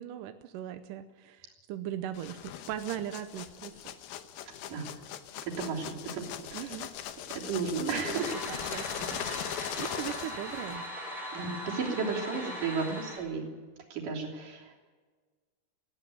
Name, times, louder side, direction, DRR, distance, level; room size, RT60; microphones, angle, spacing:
voice 1, 0.0-4.0 6.5-6.9 7.8-9.3 9.8-10.9 12.9-13.0, right 11 dB, 75° right, 9 dB, 2.1 m, -39 dB
sound 1, 2.1-10.9, left 11 dB, 80° left, 2.9 m, -40 dB
voice 2, 5.5-6.3 6.5-6.8 7.3-8.3 11.3-13.5 13.9-14.8, right 5 dB, 60° right, -1 dB, 4.8 m, -34 dB
sound 2, 8.1-13.2, equal, ahead, 7.4 m, -40 dB
19.0 x 16.0 x 9.3 m, 1.4 s
omnidirectional pair, 4.3 m